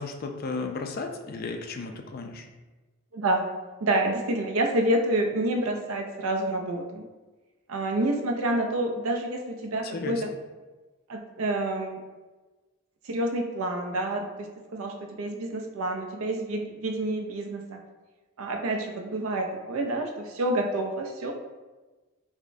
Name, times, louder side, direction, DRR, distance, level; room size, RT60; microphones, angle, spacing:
voice 1, 0.0-2.4 9.8-10.2, left 3 dB, 45° left, 4 dB, 0.3 m, -34 dB
voice 2, 3.1-3.5 3.8-7.1 7.7-10.3 11.1-12.0 13.0-17.8 18.4-21.3, right 1 dB, 80° right, 4 dB, 0.5 m, -28 dB
4.8 x 2.1 x 2.6 m, 1.2 s
head